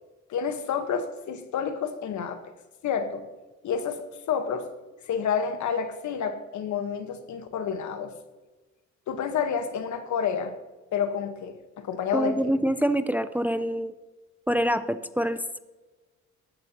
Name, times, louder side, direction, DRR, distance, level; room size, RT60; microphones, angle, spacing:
voice 1, 0.3-2.5 2.8-3.2 3.6-4.7 5.1-8.1 9.1-10.6 10.9-12.5, left 7 dB, 75° left, 9 dB, 1.2 m, -29 dB
voice 2, 12.1-13.9 14.5-15.6, equal, 5° right, 12 dB, 0.5 m, -26 dB
14.0 x 11.0 x 2.9 m, 1.2 s
cardioid pair, 90°, 30 cm